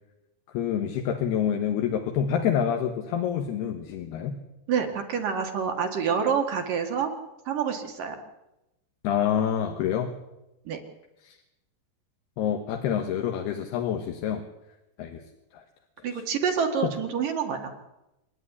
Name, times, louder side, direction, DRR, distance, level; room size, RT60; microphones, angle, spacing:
voice 1, 0.5-4.4 9.0-10.1 11.2-11.4 12.4-14.4 15.0-15.2 15.5-15.6 16.1-16.2 16.8-16.9, left 9 dB, 75° left, 4 dB, 3.2 m, -27 dB
voice 2, 4.7-7.1 7.5-8.2 10.7-10.8 16.0-17.7, right 7 dB, 55° right, 4 dB, 3.1 m, -27 dB
27.5 x 10.5 x 9.9 m, 0.93 s
omnidirectional pair, 5.0 m